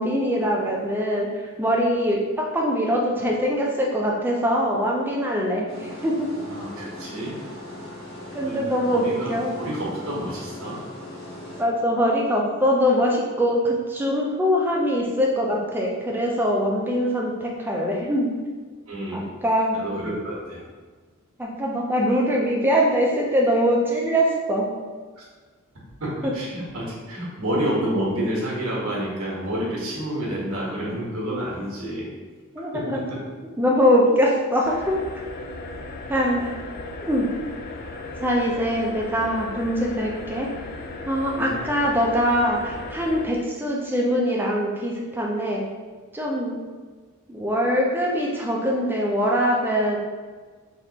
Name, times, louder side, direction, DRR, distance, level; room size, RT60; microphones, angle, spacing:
voice 1, 0.0-6.3 8.3-9.6 11.6-18.3 19.1-19.8 21.4-24.7 26.2-26.3 32.6-33.0 33.6-35.0 36.1-36.5 37.0-37.3 38.2-40.5 41.0-45.6 46.1-46.6 47.3-50.0, equal, 10° right, -2 dB, 0.5 m, -23 dB
sound 1, 5.7-11.6, left 1 dB, 65° left, 1.2 m, -39 dB
voice 2, 6.5-7.3 8.4-10.8 18.9-19.3 19.7-20.6 25.2-25.3 26.0-32.1 32.7-32.8 33.1-33.2 41.3-41.6, right 1 dB, 75° right, -5 dB, 1.3 m, -29 dB
sound 2, 34.6-43.3, left 2 dB, 45° left, 0.3 m, -36 dB
3.5 x 2.9 x 2.8 m, 1.4 s
head